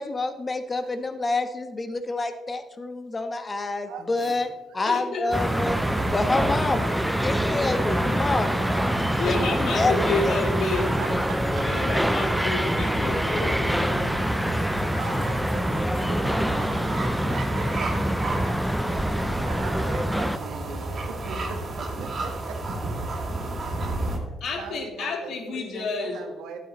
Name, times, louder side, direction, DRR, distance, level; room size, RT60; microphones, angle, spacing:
voice 1, 0.0-4.5 4.7-5.8 6.1-8.6 9.1-10.3, left 3 dB, 30° left, 8 dB, 1.0 m, -28 dB
voice 2, 3.9-4.4 4.7-4.9 5.2-5.4 10.7-12.2 14.3-22.6 23.7-26.6, right 5 dB, 85° right, 5 dB, 1.4 m, -41 dB
voice 3, 4.8-5.3 9.0-11.1 11.6-14.1 24.4-26.2, left 3 dB, 70° left, 3 dB, 1.9 m, -30 dB
sound 1, 5.3-20.4, equal, ahead, 0.3 m, -26 dB
sound 2, 5.3-24.2, right 2 dB, 45° right, 2.3 m, -32 dB
12.0 x 8.7 x 3.1 m, 1.2 s
cardioid pair, 90°, 0 cm